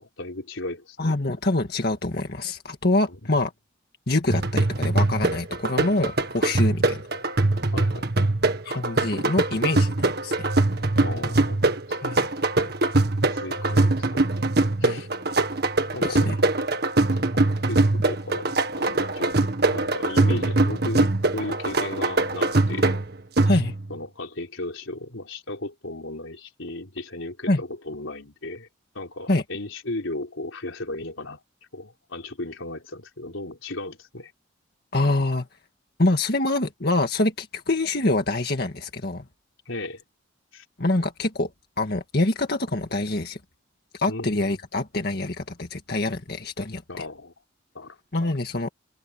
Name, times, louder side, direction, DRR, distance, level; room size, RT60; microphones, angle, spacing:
voice 1, 0.0-1.1 3.1-3.3 7.7-8.3 11.0-12.0 12.3-12.4 13.3-14.3 14.8-15.1 15.9-16.7 17.3-17.4 17.7-23.0 23.5-23.6 23.9-28.7 28.9-31.4 31.7-34.3 39.7-40.0 40.5-40.6 44.1-44.6 46.9-47.3 47.7-48.0, left 2 dB, 85° left, 4.1 m, -36 dB
voice 2, 1.0-3.5 4.1-7.0 8.6-10.5 12.0-12.3 14.8-15.0 16.0-16.3 23.4-23.7 27.5-27.6 29.3-29.4 34.9-35.5 36.0-39.3 40.8-41.5 41.8-43.4 43.9-47.0 48.1-48.7, left 2 dB, 55° left, 1.8 m, -25 dB
sound 1, 4.3-24.0, right 2 dB, 55° right, 1.9 m, -23 dB
head